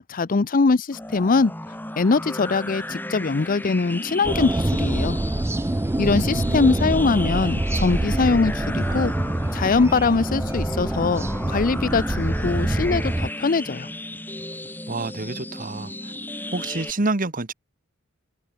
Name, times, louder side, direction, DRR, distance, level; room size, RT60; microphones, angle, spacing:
voice 1, 0.0-1.5 2.0-5.2 6.0-9.1 9.5-13.9, left 4 dB, 45° left, 0.6 m, -22 dB
sound 1, 0.9-16.9, left 1 dB, 10° left, 4.7 m, -34 dB
sound 2, 4.2-13.3, right 1 dB, 10° right, 0.4 m, -25 dB
voice 2, 6.1-6.8 14.9-16.1 16.5-17.5, right 2 dB, 45° right, 1.4 m, -28 dB
head